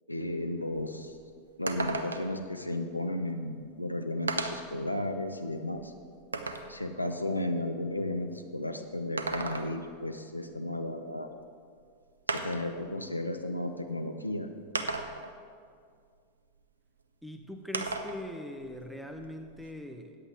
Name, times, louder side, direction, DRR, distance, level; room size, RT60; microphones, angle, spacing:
voice 1, 0.1-1.2 1.6-5.9 6.7-11.3 12.3-14.5, left 1 dB, 85° left, 6 dB, 0.6 m, -34 dB
sound 1, 0.7-0.8 1.2-1.3 1.7-2.4 3.5-3.6 4.3-4.8 5.3-6.7 9.0-9.9 11.4-11.5 12.3-12.7 13.7-13.8 14.8-15.4 17.7-18.2 18.6-19.7, right 3 dB, 75° right, 0.7 m, -35 dB
voice 2, 17.2-20.2, left 1 dB, ahead, 5 dB, 0.8 m, -41 dB
14.0 x 9.2 x 3.6 m, 2.1 s
figure-of-eight pair, 90°, 0 cm